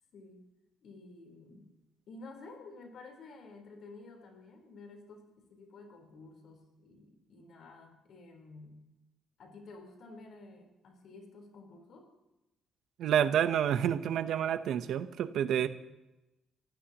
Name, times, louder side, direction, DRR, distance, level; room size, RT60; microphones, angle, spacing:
voice 1, 0.1-0.4 0.8-1.7 2.1-8.8 9.4-12.1, left 3 dB, 65° left, 3 dB, 4.0 m, -52 dB
voice 2, 13.0-15.7, right 9 dB, 75° right, 11 dB, 0.8 m, -29 dB
26.0 x 15.5 x 3.0 m, 0.96 s
cardioid pair, 90°, 0 cm